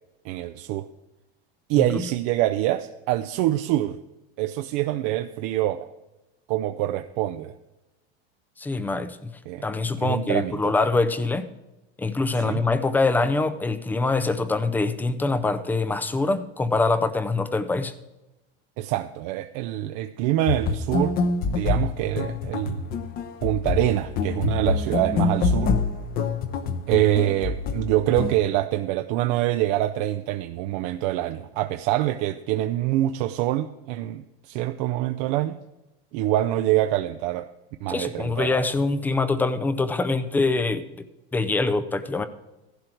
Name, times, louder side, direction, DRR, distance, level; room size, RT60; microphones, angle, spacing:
voice 1, 0.2-0.9 1.7-4.0 4.4-5.9 6.5-7.5 9.5-9.6 10.0-10.7 12.4-12.6 18.8-21.2 21.5-22.9 23.4-25.7 26.9-35.5 36.1-37.5 37.8-38.6, right 14 dB, 50° right, 8 dB, 0.5 m, -25 dB
voice 2, 8.6-9.3 9.6-11.5 12.0-17.9 37.9-40.9 41.3-42.3, left 3 dB, 5° left, 13 dB, 0.4 m, -24 dB
sound 1, 20.5-28.3, left 4 dB, 30° left, 0.8 m, -26 dB
15.0 x 11.5 x 4.5 m, 1.0 s
supercardioid pair, 155°, 30 cm